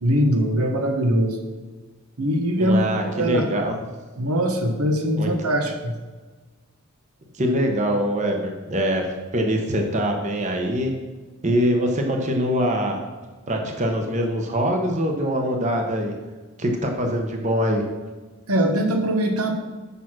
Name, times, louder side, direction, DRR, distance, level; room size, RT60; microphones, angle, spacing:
voice 1, 0.0-1.4 2.2-2.8 3.2-3.5 4.2-5.9 18.5-19.5, equal, 80° right, 4 dB, 1.1 m, -21 dB
voice 2, 2.6-3.8 5.2-5.3 7.4-9.0 9.3-10.9 11.4-13.0 13.5-16.1 16.6-17.8, equal, 30° right, 3 dB, 1.0 m, -23 dB
6.9 x 5.9 x 6.1 m, 1.3 s
head